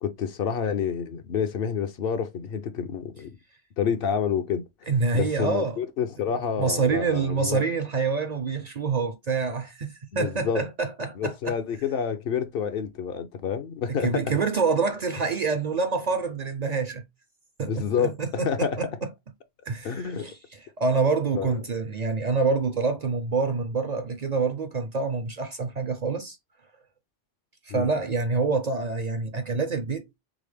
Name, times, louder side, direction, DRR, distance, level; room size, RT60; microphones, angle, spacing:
voice 1, 0.0-3.3 3.8-4.6 5.1-7.6 10.1-10.6 11.2-14.2 17.6-18.1 18.4-18.8 19.8-20.3 21.3-21.6 27.7-27.9, left 7 dB, 65° left, 0.8 m, -28 dB
voice 2, 4.9-5.8 6.6-11.6 13.9-17.0 17.6-18.9 19.7-26.4 27.6-30.2, right 4 dB, 50° right, 0.5 m, -26 dB
3.8 x 3.3 x 3.3 m
omnidirectional pair, 1.1 m